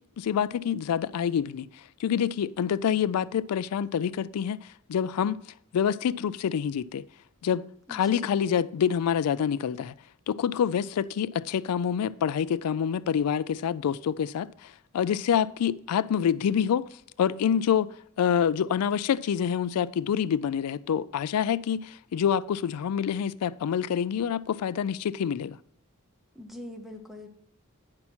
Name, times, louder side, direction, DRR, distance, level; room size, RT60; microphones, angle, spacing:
voice 1, 0.2-1.7 2.0-5.4 5.7-7.0 7.4-9.9 10.3-16.9 17.2-17.9 18.2-25.6, left 8 dB, 85° left, 0.3 m, -27 dB
voice 2, 7.9-8.4 26.3-27.3, left 1 dB, ahead, 0.6 m, -42 dB
9.7 x 5.6 x 4.3 m
head